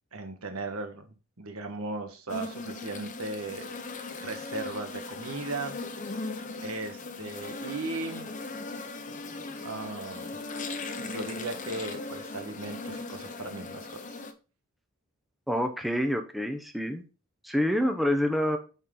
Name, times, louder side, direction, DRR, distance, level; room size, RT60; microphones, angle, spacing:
voice 1, 0.1-5.8 6.6-8.3 9.6-10.4 11.0-14.2, right 2 dB, 90° right, 5 dB, 1.5 m, -37 dB
sound 1, 2.3-14.3, left 3 dB, 35° left, 0.8 m, -38 dB
voice 2, 15.5-17.0 17.4-18.6, equal, ahead, 5 dB, 0.7 m, -27 dB
8.9 x 4.2 x 3.8 m, 0.34 s
head